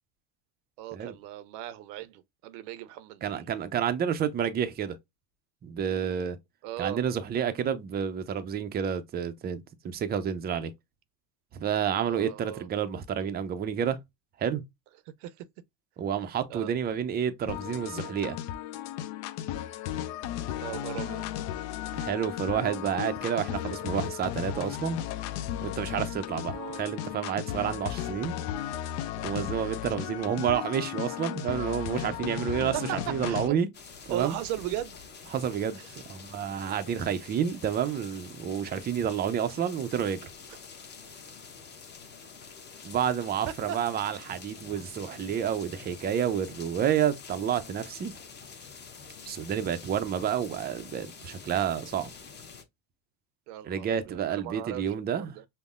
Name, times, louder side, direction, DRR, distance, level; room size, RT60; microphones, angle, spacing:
voice 1, 0.8-3.5 6.6-7.0 12.1-12.7 15.2-15.5 16.5-16.7 20.6-21.3 26.5-26.8 32.7-32.8 33.3-33.6 34.1-35.0 35.8-35.9 43.7-43.8 53.5-55.4, right 12 dB, 90° right, 0.7 m, -37 dB
voice 2, 3.2-5.0 5.6-6.4 6.8-10.7 11.5-14.0 14.4-14.6 16.0-18.4 22.0-25.0 25.6-28.3 29.2-33.7 34.1-34.4 35.3-35.8 36.1-40.3 42.8-48.1 49.3-52.1 53.6-55.4, right 8 dB, 25° right, 0.4 m, -29 dB
sound 1, 17.5-33.5, left 11 dB, 70° left, 0.6 m, -35 dB
sound 2, 33.7-52.6, left 5 dB, 20° left, 0.7 m, -47 dB
5.4 x 2.0 x 2.3 m
supercardioid pair, 125°, 47 cm